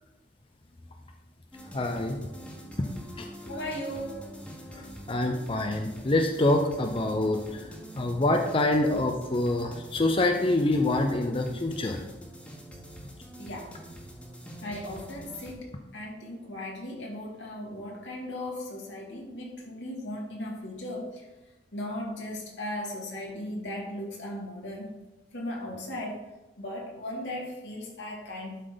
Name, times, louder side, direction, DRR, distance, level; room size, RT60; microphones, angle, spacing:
sound 1, 1.5-15.5, equal, 5° left, 1.4 m, -45 dB
voice 1, 1.7-2.2 3.2-3.3 4.7-4.8 5.1-7.6 8.0-12.0, left 2 dB, 30° left, 4 dB, 0.5 m, -26 dB
voice 2, 3.4-4.2 13.4-13.7 14.6-15.6 15.9-21.1 21.7-24.9 25.3-26.2 26.6-28.6, left 1 dB, 85° left, -2 dB, 2.3 m, -37 dB
11.5 x 4.0 x 5.0 m, 1.1 s
head